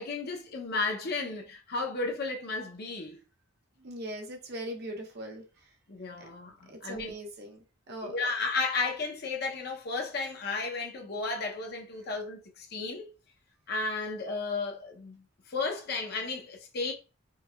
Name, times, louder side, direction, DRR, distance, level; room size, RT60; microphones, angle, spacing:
voice 1, 0.0-3.2 5.9-7.1 8.0-13.1 13.7-16.9, left 3 dB, 55° left, 0.7 m, -33 dB
voice 2, 3.8-5.4 6.2-6.3 6.7-7.6 7.9-8.1, right 1 dB, 55° right, 0.8 m, -40 dB
4.6 x 2.4 x 2.3 m
head